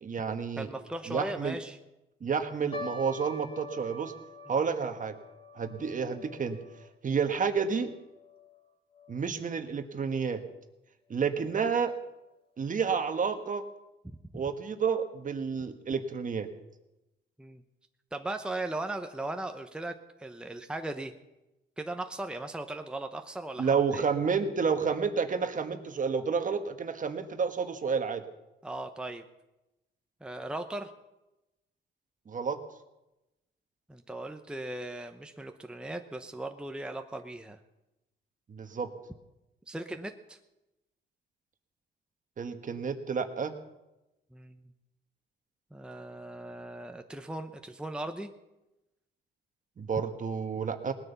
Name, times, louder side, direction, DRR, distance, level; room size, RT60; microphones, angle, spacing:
voice 1, 0.0-0.7 1.1-1.6 2.2-4.1 4.5-5.1 5.5-6.6 7.0-7.9 9.1-10.4 11.1-12.0 12.6-13.6 14.3-16.5 23.6-28.2 32.3-32.6 38.5-38.9 42.4-43.5 49.8-50.9, right 6 dB, 40° right, 7 dB, 1.4 m, -30 dB
voice 2, 0.6-1.8 14.0-14.2 17.4-17.6 18.1-21.1 21.8-24.0 28.6-29.2 30.2-30.9 33.9-37.6 39.7-40.4 44.3-44.6 45.7-48.3, right 2 dB, 5° right, 6 dB, 0.9 m, -38 dB
sound 1, 2.7-9.2 9.5-9.6 10.3-10.6 11.2-11.3 11.7-11.8, left 2 dB, 25° left, 2.2 m, -46 dB
19.0 x 9.5 x 7.0 m, 0.97 s
cardioid pair, 90°, 20 cm